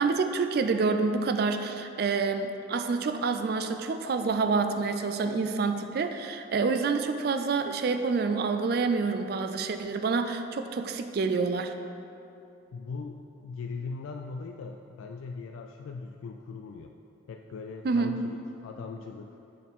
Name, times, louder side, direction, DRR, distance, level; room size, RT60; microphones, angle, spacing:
voice 1, 0.0-11.7 17.8-18.2, right 4 dB, 50° right, 8 dB, 0.3 m, -27 dB
voice 2, 12.7-16.9 17.3-19.4, left 4 dB, 90° left, 3 dB, 0.3 m, -40 dB
8.3 x 4.2 x 3.6 m, 2.7 s
head